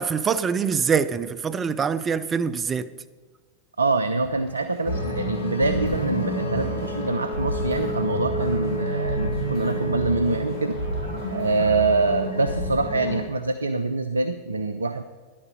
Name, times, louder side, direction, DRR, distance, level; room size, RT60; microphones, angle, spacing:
voice 1, 0.0-2.9, right 6 dB, 20° right, 0.5 m, -24 dB
voice 2, 3.8-10.8 11.3-15.0, right 3 dB, 80° right, 0.4 m, -25 dB
sound 1, 4.2-11.6, equal, 45° right, 4.3 m, -47 dB
sound 2, 4.8-13.2, equal, 70° left, 1.5 m, -28 dB
10.5 x 8.6 x 5.4 m
figure-of-eight pair, 90°, 0 cm